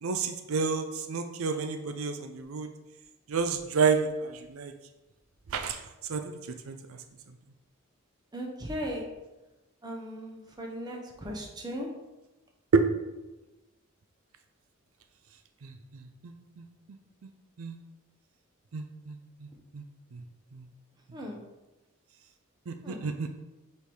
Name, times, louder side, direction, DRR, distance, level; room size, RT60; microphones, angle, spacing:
voice 1, 0.0-2.7 3.3-4.7 5.5-5.8 6.1-6.2 6.7-7.0 12.7-12.8 15.6-16.6 17.6-17.8 18.7-19.5 19.7-19.8 20.1-20.2 20.5-20.6 22.7-23.3, right 5 dB, 80° right, 8 dB, 0.5 m, -30 dB
voice 2, 8.3-9.1 9.8-11.9 21.1-21.4 22.8-23.1, equal, 20° right, 0 dB, 1.0 m, -37 dB
6.6 x 3.6 x 4.6 m, 1.1 s
head